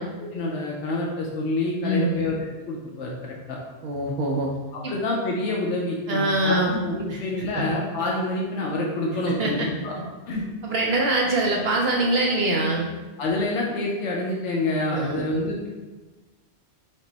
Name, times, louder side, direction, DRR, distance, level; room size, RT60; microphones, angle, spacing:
voice 1, 0.0-2.3 2.7-3.6 4.9-9.9 10.3-10.4 12.6-12.7 13.2-15.7, left 2 dB, 85° left, -2 dB, 0.9 m, -27 dB
voice 2, 1.8-2.2 3.8-4.5 4.8-4.9 6.1-6.7 7.1-7.2 7.5-7.7 9.4-9.7 10.6-12.9 14.9-15.2, right 2 dB, 65° right, -1 dB, 0.7 m, -23 dB
5.2 x 2.1 x 3.9 m, 1.2 s
omnidirectional pair, 1.2 m